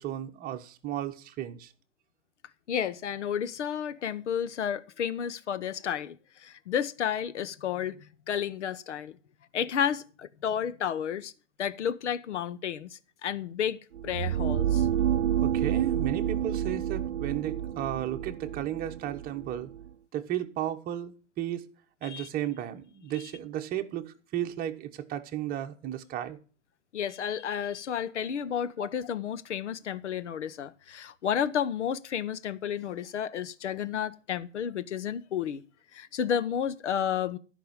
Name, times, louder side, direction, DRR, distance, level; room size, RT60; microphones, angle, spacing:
voice 1, 0.0-1.7 15.4-19.7 20.1-21.7 22.0-26.4, right 11 dB, 25° right, 1.3 m, -34 dB
voice 2, 2.7-8.0 8.3-9.2 9.5-11.3 11.6-13.8 14.0-14.9 22.0-22.3 26.9-35.6 35.9-37.4, left 8 dB, 70° left, 1.1 m, -31 dB
sound 1, 14.0-19.9, right 10 dB, 70° right, 0.7 m, -29 dB
13.0 x 5.7 x 8.9 m
hypercardioid pair, 125°, 36 cm